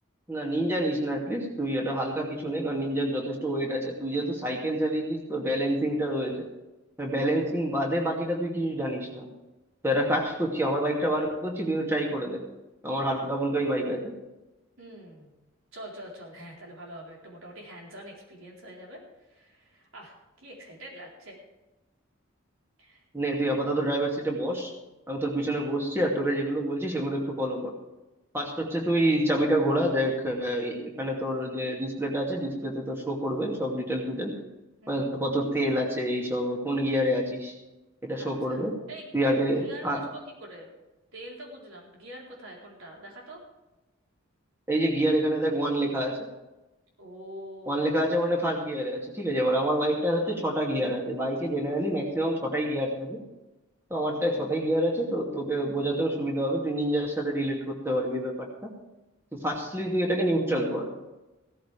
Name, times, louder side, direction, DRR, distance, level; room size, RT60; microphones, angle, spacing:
voice 1, 0.3-6.5 7.0-9.3 9.8-12.5 12.8-14.1 23.1-24.7 25.1-27.7 28.3-34.3 34.9-37.5 38.0-38.8 39.1-40.0 44.7-46.2 47.7-53.2 53.9-58.7 59.3-60.9, right 1 dB, 10° right, -1 dB, 2.5 m, -27 dB
voice 2, 14.8-15.3 15.7-21.4 22.8-23.0 34.8-35.3 38.1-38.6 38.9-39.4 39.6-40.7 41.1-43.4 47.0-47.9 59.4-59.5 59.7-59.8, right 1 dB, 80° right, -2 dB, 4.1 m, -45 dB
16.5 x 14.0 x 3.5 m, 1.0 s
head